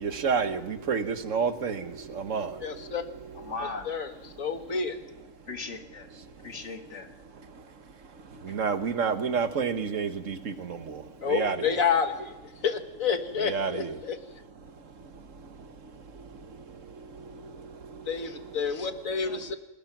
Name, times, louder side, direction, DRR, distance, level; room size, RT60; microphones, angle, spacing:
voice 1, 0.0-1.8 2.2-2.5 8.5-10.8 11.3-11.6 13.4-14.0, right 6 dB, 70° right, 9 dB, 1.6 m, -28 dB
voice 2, 2.6-3.0 3.6-4.1 4.4-5.0 11.2-12.3 12.6-14.2 18.1-19.6, left 6 dB, 85° left, 7 dB, 2.0 m, -29 dB
voice 3, 3.4-3.9 5.5-6.1 6.4-7.1 19.2-19.4, left 3 dB, 60° left, 5 dB, 2.0 m, -38 dB
29.5 x 20.0 x 6.0 m, 1.0 s
omnidirectional pair, 1.4 m